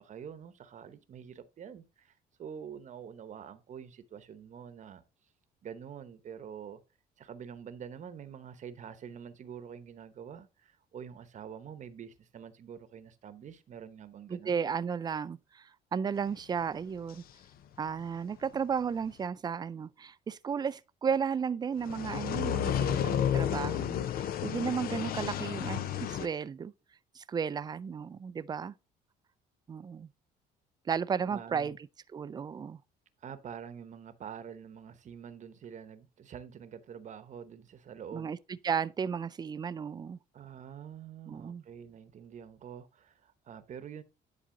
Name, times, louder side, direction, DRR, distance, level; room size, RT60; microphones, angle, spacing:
voice 1, 0.0-5.0 5.6-6.8 7.2-14.6 31.3-31.7 33.2-38.3 40.3-44.0, right 8 dB, 45° right, 0.9 m, -46 dB
voice 2, 14.3-17.2 17.8-26.7 27.1-28.7 29.7-30.1 30.9-31.8 32.1-32.8 38.1-40.2 41.3-41.6, right 6 dB, 25° right, 0.4 m, -34 dB
sound 1, 21.8-26.3, left 10 dB, 60° left, 0.6 m, -31 dB
10.5 x 4.0 x 3.8 m
cardioid pair, 110°, 17 cm